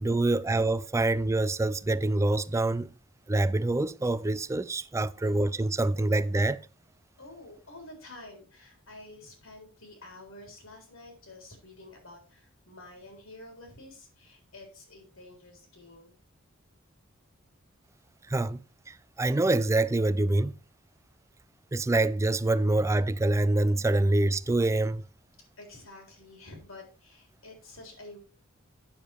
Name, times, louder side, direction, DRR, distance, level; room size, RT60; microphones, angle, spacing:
voice 1, 0.0-2.9 3.3-6.6 18.3-18.6 18.9-20.5 21.7-25.0, right 2 dB, 15° right, 0.3 m, -26 dB
voice 2, 7.2-16.2 25.6-28.2, left 2 dB, 80° left, 3.8 m, -49 dB
8.7 x 6.9 x 4.4 m
head